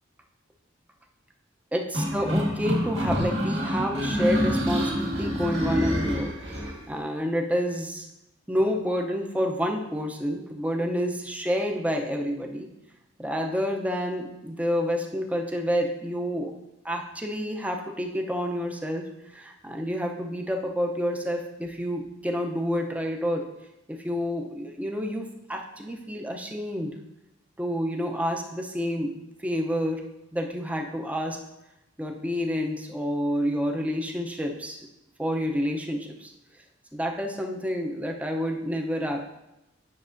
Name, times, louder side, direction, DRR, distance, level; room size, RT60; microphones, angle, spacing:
voice 1, 1.7-8.1 8.5-12.7 13.2-16.5 16.8-19.1 19.3-23.4 23.9-26.9 27.6-30.0 30.3-31.4 32.0-34.8 35.2-36.3 36.9-39.2, equal, 5° right, 2 dB, 0.6 m, -29 dB
sound 1, 1.9-6.8, equal, 65° right, 2.0 m, -27 dB
9.6 x 6.0 x 2.6 m, 0.92 s
head